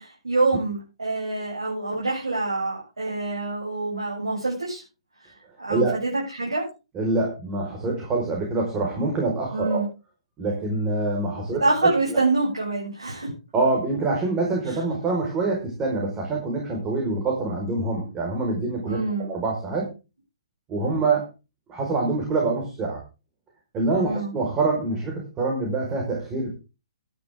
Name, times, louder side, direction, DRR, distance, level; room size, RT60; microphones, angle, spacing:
voice 1, 0.0-4.8 5.6-6.7 9.5-9.9 11.6-13.3 18.9-19.3 23.9-24.3, right 3 dB, 80° right, -6 dB, 7.7 m, -26 dB
voice 2, 6.9-9.8 10.4-11.6 12.1-12.2 13.5-19.9 20.7-21.2 21.7-23.0 23.7-26.5, right 3 dB, 20° right, 0 dB, 5.0 m, -25 dB
14.0 x 12.0 x 3.7 m, 0.30 s
figure-of-eight pair, 125°, 3 cm